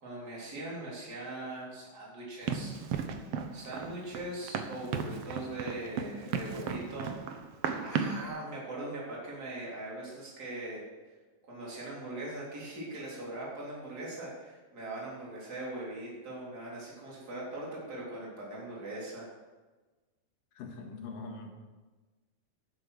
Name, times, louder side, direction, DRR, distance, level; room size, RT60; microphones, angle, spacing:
voice 1, 0.0-2.7 3.5-7.1 7.7-10.8 11.5-19.3, right 1 dB, 25° right, -5 dB, 3.9 m, -41 dB
Run, 2.5-8.3, right 6 dB, 85° right, 1.3 m, -35 dB
voice 2, 20.5-21.6, left 3 dB, 80° left, 2 dB, 3.3 m, -43 dB
11.5 x 9.2 x 6.4 m, 1.3 s
omnidirectional pair, 3.9 m